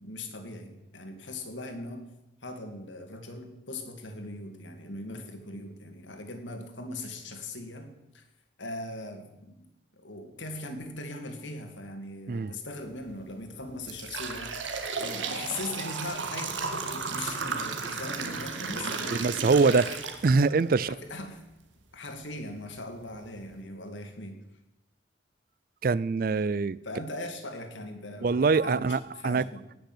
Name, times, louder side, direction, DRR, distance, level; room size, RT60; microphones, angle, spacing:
voice 1, 0.0-2.0 2.4-8.2 8.6-9.7 9.9-14.6 15.0-19.3 19.7-20.0 20.8-21.4 21.9-24.4 26.8-29.6, left 2 dB, 85° left, 2.3 m, -40 dB
sound 1, 12.9-13.1 13.6-20.7 21.2-21.3 22.2-22.3 22.8-22.9 23.3-23.5, right 4 dB, 90° right, 1.7 m, -34 dB
voice 2, 19.1-19.9 20.2-20.9 25.8-26.8 28.2-29.4, right 4 dB, 50° right, 0.4 m, -24 dB
18.0 x 6.6 x 7.9 m
head